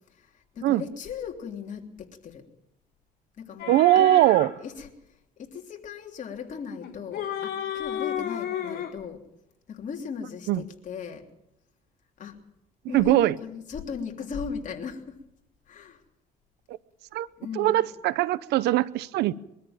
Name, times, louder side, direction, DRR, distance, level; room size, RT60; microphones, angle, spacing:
voice 1, 0.1-2.5 3.4-4.2 4.6-9.2 9.7-11.3 12.2-12.4 12.9-15.2 15.7-16.0 17.4-17.8, left 6 dB, 50° left, 3 dB, 3.3 m, -38 dB
sound 1, 3.6-4.5 6.8-9.0, left 10 dB, 65° left, 3.7 m, -32 dB
voice 2, 3.7-4.5 10.5-10.6 12.9-13.3 16.7-16.8 17.1-17.3 17.6-19.3, right 15 dB, 80° right, 18 dB, 0.8 m, -21 dB
23.0 x 13.5 x 8.9 m, 0.86 s
cardioid pair, 110°, 17 cm